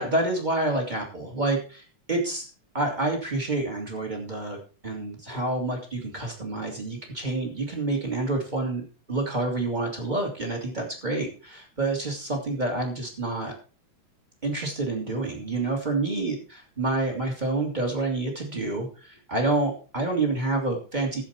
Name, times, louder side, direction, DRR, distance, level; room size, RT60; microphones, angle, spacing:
voice 1, 0.0-2.5 2.7-4.6 4.8-13.5 14.4-16.3 16.8-21.2, right 2 dB, 15° right, 1 dB, 2.7 m, -28 dB
12.5 x 8.4 x 4.4 m, 0.37 s
omnidirectional pair, 3.6 m